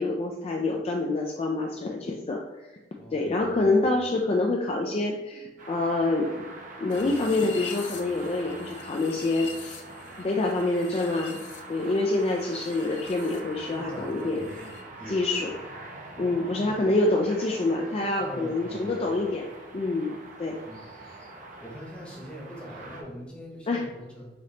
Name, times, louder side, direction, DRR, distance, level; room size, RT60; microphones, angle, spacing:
voice 1, 0.0-2.8 3.1-6.3 6.8-9.8 10.2-11.4 11.7-14.5 15.1-15.5 16.2-20.6 23.7-23.8, left 2 dB, 35° left, 0 dB, 0.4 m, -26 dB
voice 2, 3.0-3.8 13.7-15.4 16.2-16.9 18.2-19.1 20.6-20.9 21.6-24.3, equal, 5° left, -3 dB, 0.9 m, -43 dB
sound 1, 5.6-23.0, right 2 dB, 45° right, 0.7 m, -44 dB
sound 2, 6.9-13.4 13.7-14.8, left 5 dB, 85° left, 0.5 m, -44 dB
5.0 x 2.9 x 2.8 m, 1.1 s
head